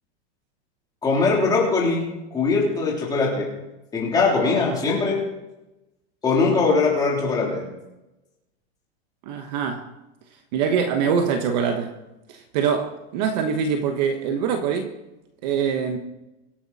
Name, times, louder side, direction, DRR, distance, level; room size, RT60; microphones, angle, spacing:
voice 1, 1.0-3.5 3.9-5.3 6.2-7.7, left 4 dB, 10° left, 3.4 m, -21 dB
voice 2, 9.3-9.9 10.5-11.9 12.3-14.9 15.4-16.0, right 7 dB, 40° right, 1.2 m, -24 dB
25.0 x 10.5 x 4.2 m
supercardioid pair, 180°, 34 cm